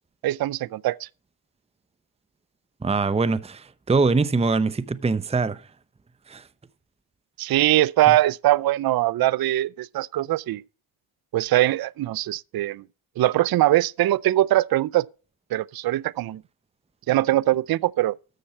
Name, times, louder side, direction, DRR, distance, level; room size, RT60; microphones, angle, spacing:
voice 1, 0.2-1.1 7.4-10.6 11.3-12.8 13.2-15.1 15.5-16.4 17.1-18.2, right 15 dB, 50° right, 0.5 m, -22 dB
voice 2, 2.8-5.6 6.3-6.4 8.1-8.2, right 4 dB, 15° right, 0.7 m, -23 dB
13.5 x 7.0 x 4.3 m
cardioid pair, 75°, 49 cm